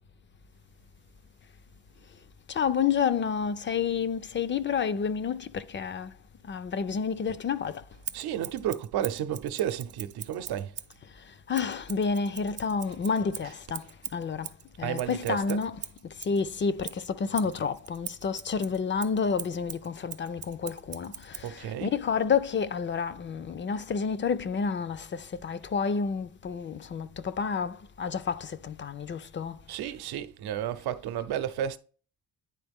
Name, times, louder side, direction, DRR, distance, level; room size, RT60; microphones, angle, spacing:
voice 1, 2.5-6.2 6.4-7.8 11.2-29.6, left 6 dB, 30° left, 0.4 m, -30 dB
Scissors, 8.0-11.0 11.5-16.4 16.8-21.5, right 9 dB, 40° right, 0.5 m, -42 dB
voice 2, 8.1-10.8 13.4-13.6 14.8-15.6 21.4-22.0 29.7-31.8, right 10 dB, 80° right, 0.8 m, -32 dB
9.8 x 3.9 x 3.5 m
cardioid pair, 110°, 38 cm